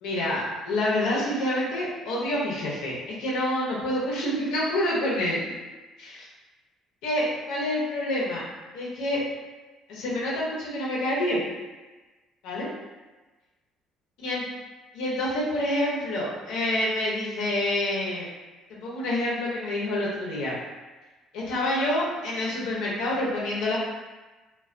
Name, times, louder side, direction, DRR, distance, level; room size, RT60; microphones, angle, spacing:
voice 1, 0.0-5.4 6.0-6.3 7.0-8.4 8.7-9.2 9.9-11.4 12.4-12.7 14.2-14.4 15.0-18.3 18.7-20.5 21.3-23.8, left 1 dB, 80° left, -5 dB, 0.7 m, -27 dB
2.3 x 2.2 x 2.4 m, 1.2 s
supercardioid pair, 75°, 0 cm